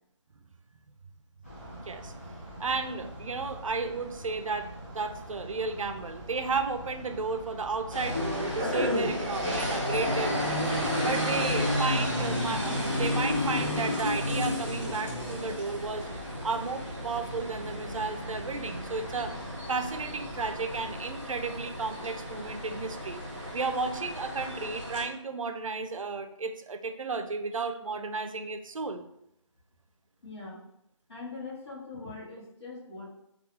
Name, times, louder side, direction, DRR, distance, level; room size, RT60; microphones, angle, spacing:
sound 1, 1.4-20.9, right 1 dB, 25° left, 0.6 m, -44 dB
voice 1, 2.6-10.7 11.0-16.1 16.4-19.3 19.7-23.2 23.5-29.1, right 4 dB, 85° right, 9 dB, 0.4 m, -33 dB
sound 2, 7.9-25.0, left 1 dB, 25° right, 0.7 m, -32 dB
voice 2, 30.2-30.6 31.1-33.1, left 3 dB, 55° left, -7 dB, 1.0 m, -42 dB
2.3 x 2.3 x 2.9 m, 0.78 s
figure-of-eight pair, 175°, 16 cm